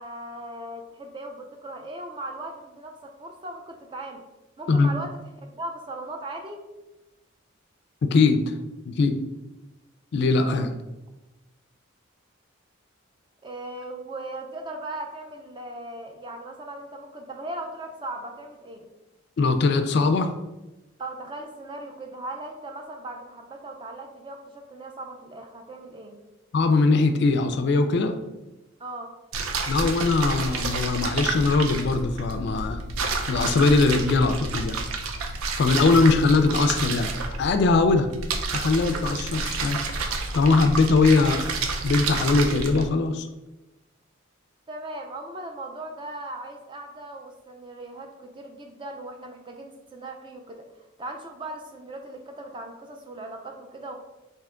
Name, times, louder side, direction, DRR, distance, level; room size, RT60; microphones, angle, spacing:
voice 1, 0.0-4.2 4.6-5.2 5.5-6.6 13.4-18.9 21.0-26.2 28.8-29.1 44.7-50.6 51.0-53.9, right 1 dB, 25° right, 3 dB, 0.4 m, -38 dB
voice 2, 8.1-8.5 8.9-9.2 10.1-10.7 19.4-20.3 26.5-28.2 29.7-32.8 33.3-34.8 35.5-37.1 37.4-38.1 38.5-39.8 40.3-41.5 41.8-43.3, left 3 dB, 55° left, 7 dB, 0.3 m, -21 dB
sound 1, 29.3-42.9, right 3 dB, 85° right, 0.5 m, -30 dB
3.4 x 2.8 x 3.6 m, 1.0 s
head